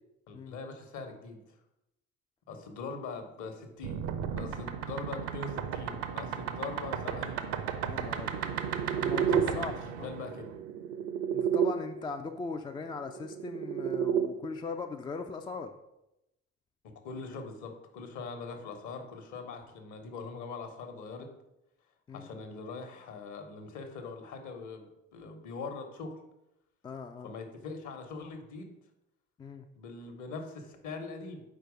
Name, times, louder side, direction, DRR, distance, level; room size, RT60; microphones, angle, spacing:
voice 1, 0.3-1.4 2.5-4.1 4.3-7.4 9.0-10.5 17.0-21.3 22.1-26.1 27.2-28.7 29.8-31.4, left 4 dB, 50° left, 5 dB, 1.1 m, -42 dB
sound 1, 3.8-11.7 13.0-14.3, right 8 dB, 60° right, 0.6 m, -32 dB
voice 2, 7.8-8.5 8.9-9.7 10.0-10.1 11.3-15.7 22.1-22.3 26.8-27.3 29.4-29.7, left 4 dB, 15° left, 6 dB, 0.3 m, -39 dB
4.6 x 4.6 x 5.0 m, 0.88 s
figure-of-eight pair, 50°, 37 cm